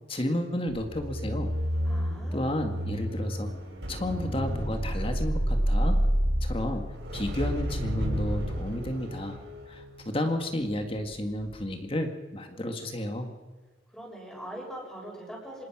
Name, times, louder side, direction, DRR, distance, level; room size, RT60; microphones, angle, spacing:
voice 1, 0.1-1.5 2.3-3.5 3.9-6.0 6.4-6.8 7.1-9.4 9.7-13.3, left 1 dB, 30° left, 5 dB, 2.0 m, -32 dB
sound 1, 0.7-11.0 11.3-11.6, equal, 60° right, 7.9 m, -30 dB
voice 2, 1.8-2.5 13.9-15.7, right 1 dB, 5° left, -3 dB, 6.8 m, -42 dB
26.5 x 19.5 x 6.2 m, 1.3 s
head